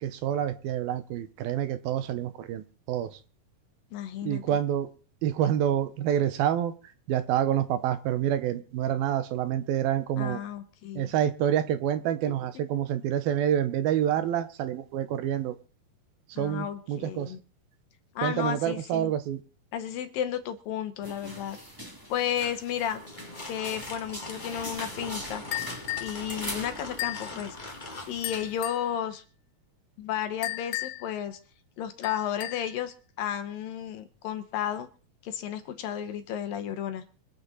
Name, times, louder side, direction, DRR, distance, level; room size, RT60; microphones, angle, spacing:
voice 1, 0.0-3.2 4.2-4.9 5.2-6.7 7.1-10.4 11.0-15.6 16.4-17.3 18.2-19.4, right 10 dB, 75° right, 11 dB, 2.6 m, -27 dB
voice 2, 3.9-4.4 10.2-11.1 16.4-17.4 18.2-19.1 19.7-21.6 22.1-23.0 23.5-25.4 26.0-27.6 28.1-29.2 30.0-31.4 31.8-34.9 35.2-37.0, left 9 dB, 75° left, 9 dB, 2.4 m, -33 dB
sound 1, 21.0-28.6, equal, 10° right, 1.4 m, -42 dB
sound 2, 22.9-28.1, left 2 dB, 55° left, 0.5 m, -41 dB
sound 3, 25.5-26.2 27.0-27.3 28.2-28.9 30.4-31.1 32.0-32.7, left 18 dB, 90° left, 2.9 m, -35 dB
24.0 x 8.6 x 4.1 m, 0.39 s
omnidirectional pair, 4.6 m